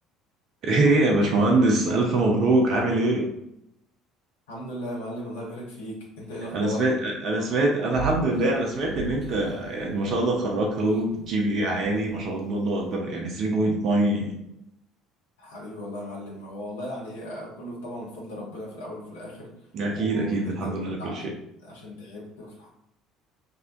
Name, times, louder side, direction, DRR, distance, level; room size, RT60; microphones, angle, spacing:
voice 1, 0.6-3.3 6.5-14.3 19.7-21.2, right 2 dB, 50° right, 0 dB, 0.5 m, -24 dB
voice 2, 4.5-6.9 15.4-21.3 21.6-22.7, equal, 75° left, -4 dB, 0.8 m, -37 dB
sound 1, 7.9-13.0, right 4 dB, 35° right, 0.9 m, -40 dB
2.7 x 2.1 x 2.5 m, 0.80 s
figure-of-eight pair, 60°, 0 cm